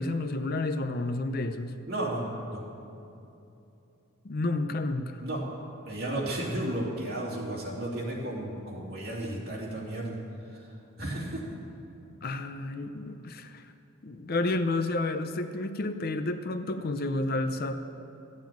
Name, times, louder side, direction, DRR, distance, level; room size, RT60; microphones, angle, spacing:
voice 1, 0.0-1.8 4.2-5.2 12.2-13.7 14.0-17.7, left 2 dB, 45° left, 9 dB, 0.5 m, -30 dB
voice 2, 1.9-2.6 5.2-5.5 5.8-10.2 10.5-11.5, right 1 dB, 50° right, -4 dB, 2.8 m, -33 dB
14.0 x 7.2 x 9.1 m, 2.8 s
head